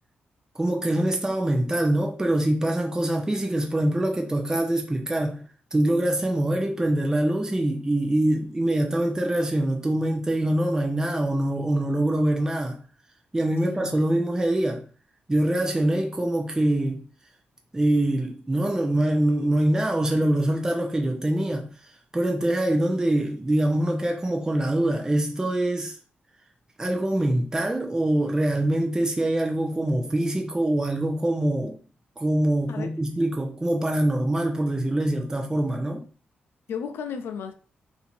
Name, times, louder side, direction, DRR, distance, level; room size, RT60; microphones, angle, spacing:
voice 1, 0.5-5.4 5.7-12.8 13.3-14.8 15.3-17.0 17.7-26.0 26.8-31.8 32.2-36.1, right 1 dB, 15° right, 0.7 m, -24 dB
voice 2, 13.6-14.0 32.7-32.9 36.7-37.5, left 7 dB, 80° left, 0.5 m, -34 dB
2.7 x 2.6 x 4.3 m
cardioid pair, 70°, 4 cm